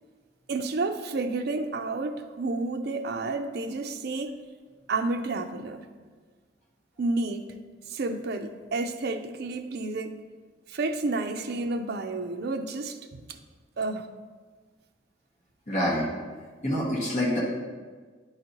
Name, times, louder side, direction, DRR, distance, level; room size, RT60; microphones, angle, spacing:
voice 1, 0.5-4.4 4.9-5.8 7.0-7.5 7.9-10.1 10.7-13.0 13.3-13.4 13.8-14.1, right 3 dB, 55° right, 6 dB, 0.5 m, -30 dB
voice 2, 15.7-16.1 16.6-17.4, equal, 40° left, -5 dB, 1.6 m, -26 dB
10.0 x 4.0 x 2.9 m, 1.5 s
head